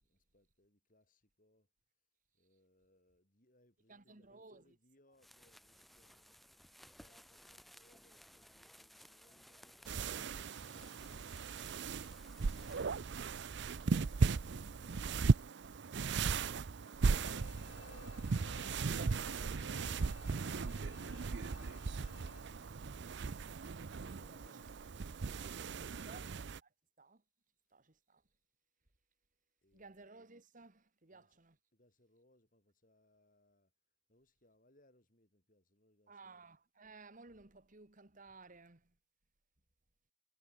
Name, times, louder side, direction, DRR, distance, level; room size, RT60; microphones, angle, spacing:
voice 1, 0.0-1.7 2.3-11.8 24.0-26.4 29.6-30.1 31.1-31.4 31.7-33.7 34.1-36.5, left 1 dB, 40° left, 7.5 m, -73 dB
voice 2, 3.9-4.8 12.1-12.7 24.1-24.6 25.0-25.5 26.0-26.7 27.0-27.2 27.7-28.2 29.7-31.6 36.1-39.0, right 3 dB, 40° right, 1.8 m, -58 dB
sound 1, 5.1-12.8, equal, ahead, 2.1 m, -60 dB
sound 2, 9.9-26.6, right 4 dB, 60° right, 0.5 m, -37 dB
sound 3, 17.1-22.4, left 3 dB, 70° left, 2.7 m, -57 dB
head